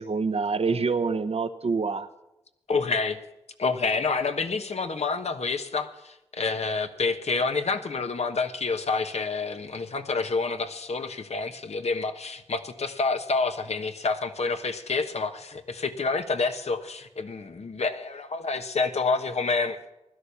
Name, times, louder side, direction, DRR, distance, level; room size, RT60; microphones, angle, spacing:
voice 1, 0.0-2.1, right 4 dB, 70° right, 10 dB, 0.8 m, -26 dB
voice 2, 2.7-3.2 3.6-19.8, left 4 dB, 85° left, 8 dB, 1.2 m, -28 dB
16.0 x 12.0 x 7.1 m, 0.90 s
wide cardioid pair, 80°, 11 cm